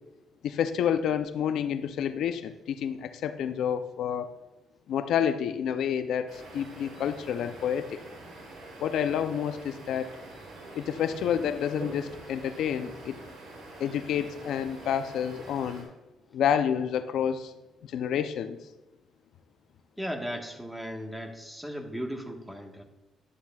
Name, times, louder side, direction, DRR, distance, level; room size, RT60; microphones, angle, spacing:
voice 1, 0.4-4.3 4.9-8.0 8.8-10.2 10.7-13.2 13.8-15.9 16.3-17.5 17.9-18.6, left 8 dB, 80° left, 10 dB, 0.5 m, -29 dB
sound 1, 6.3-15.8, right 2 dB, 80° right, 3.3 m, -45 dB
voice 2, 20.0-22.8, equal, 5° right, 3 dB, 1.4 m, -36 dB
11.5 x 11.5 x 2.4 m, 1.0 s
cardioid pair, 90°, 0 cm